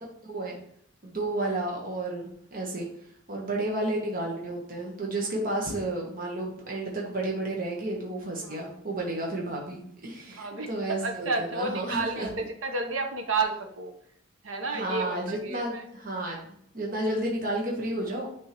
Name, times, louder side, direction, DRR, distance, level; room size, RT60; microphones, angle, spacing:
voice 1, 0.2-0.6 1.0-2.9 3.3-12.3 14.7-16.4 16.7-18.3, right 1 dB, 40° right, -1 dB, 1.1 m, -31 dB
voice 2, 10.3-10.7 11.0-13.9 14.4-15.8, right 3 dB, 80° right, 5 dB, 0.9 m, -31 dB
8.9 x 3.6 x 3.0 m, 0.68 s
head